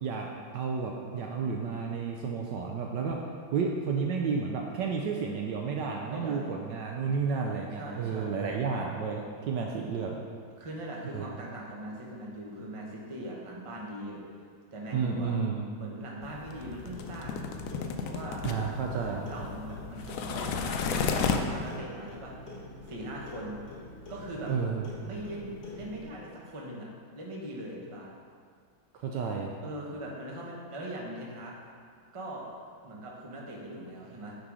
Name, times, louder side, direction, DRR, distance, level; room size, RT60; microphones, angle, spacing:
voice 1, 0.5-3.2 3.5-10.2 11.1-11.3 14.9-15.7 18.4-19.3 24.5-24.9 29.0-29.5, right 5 dB, 70° right, 0 dB, 1.1 m, -31 dB
voice 2, 6.0-6.5 7.7-8.4 10.6-14.2 14.7-15.3 15.8-17.5 18.0-18.5 18.9-22.3 22.9-23.6 24.1-24.5 25.0-26.9 27.1-28.1 29.6-31.5 32.1-32.5 32.8-34.4, right 1 dB, 25° right, -3 dB, 0.6 m, -40 dB
sound 1, 16.2-21.8, left 5 dB, 80° left, 0.9 m, -33 dB
Clock, 17.0-26.0, left 1 dB, 50° left, 1.9 m, -46 dB
9.0 x 4.0 x 4.8 m, 2.1 s
omnidirectional pair, 2.2 m